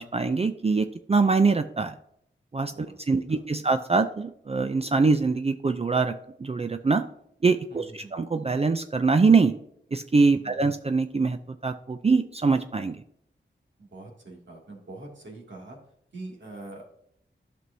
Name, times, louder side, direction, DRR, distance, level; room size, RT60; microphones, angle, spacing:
voice 1, 0.0-1.9 2.5-6.1 6.4-7.0 7.4-9.5 9.9-13.0, right 4 dB, 30° right, 8 dB, 0.5 m, -23 dB
voice 2, 2.7-3.4 7.7-8.1 10.3-10.7 13.8-15.8 16.1-16.9, right 2 dB, 70° right, -1 dB, 2.4 m, -44 dB
11.0 x 6.1 x 2.7 m, 0.70 s
wide cardioid pair, 60°, 20 cm